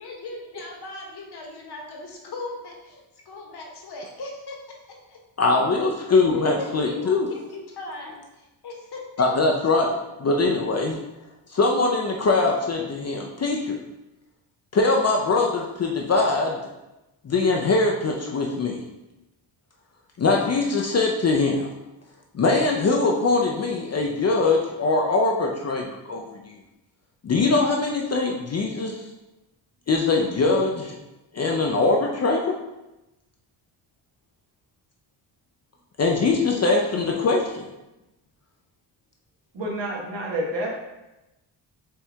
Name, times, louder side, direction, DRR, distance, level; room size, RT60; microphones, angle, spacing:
voice 1, 0.0-4.6 5.1-5.2 6.3-6.4 6.8-9.2, left 2 dB, 55° left, 0 dB, 1.1 m, -38 dB
voice 2, 5.4-7.3 9.2-11.0 11.5-13.8 14.7-16.6 17.2-18.8 20.2-21.7 22.3-26.5 27.2-29.0 29.9-31.0 31.3-32.6 36.0-37.7, left 3 dB, 35° left, 0 dB, 0.5 m, -22 dB
voice 3, 39.5-40.8, right 1 dB, 60° right, -1 dB, 1.2 m, -29 dB
4.5 x 3.2 x 3.4 m, 0.97 s
cardioid pair, 110°, 48 cm